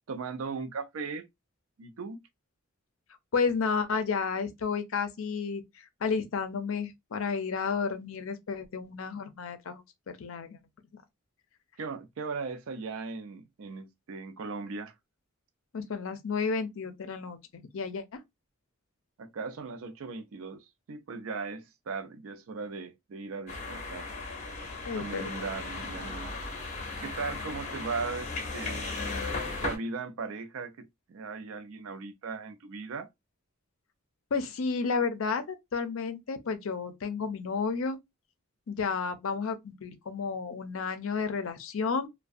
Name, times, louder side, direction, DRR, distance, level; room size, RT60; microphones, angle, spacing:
voice 1, 0.1-1.3 1.8-2.2 11.8-14.9 19.2-24.1 25.0-26.3 27.0-28.9 29.6-33.1, right 4 dB, 75° right, 0.4 m, -38 dB
voice 2, 3.3-10.6 15.7-18.2 24.8-25.3 34.3-38.0 38.7-42.1, left 5 dB, 70° left, 0.5 m, -32 dB
sound 1, 23.5-29.8, left 3 dB, 35° left, 0.7 m, -36 dB
2.4 x 2.2 x 2.4 m
head